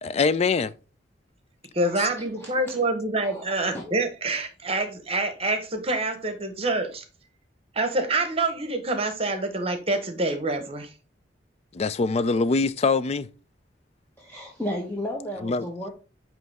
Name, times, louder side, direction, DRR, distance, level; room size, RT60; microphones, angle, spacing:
voice 1, 0.0-0.7 2.0-2.1 11.7-13.3 15.4-15.7, left 4 dB, 35° left, 0.4 m, -23 dB
voice 2, 1.7-7.0 7.7-10.9, right 2 dB, 35° right, 1.0 m, -26 dB
voice 3, 14.2-15.9, left 1 dB, 15° left, 1.0 m, -33 dB
9.2 x 3.1 x 3.5 m
head